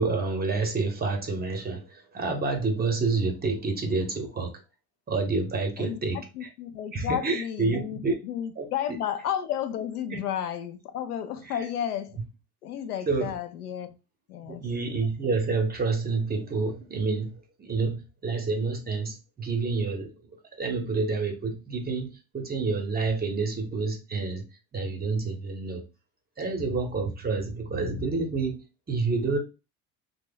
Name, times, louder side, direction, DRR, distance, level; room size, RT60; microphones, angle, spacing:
voice 1, 0.0-4.5 5.1-6.5 6.9-8.2 8.6-9.0 10.1-10.2 11.4-11.7 13.1-13.3 14.4-20.1 20.6-24.4 24.7-25.8 26.4-29.4, right 4 dB, 20° right, 0.8 m, -28 dB
voice 2, 6.3-8.0 8.2-12.2 12.6-13.9 14.3-14.6, left 9 dB, 85° left, 0.6 m, -32 dB
2.8 x 2.2 x 3.7 m
hypercardioid pair, 80°, 44 cm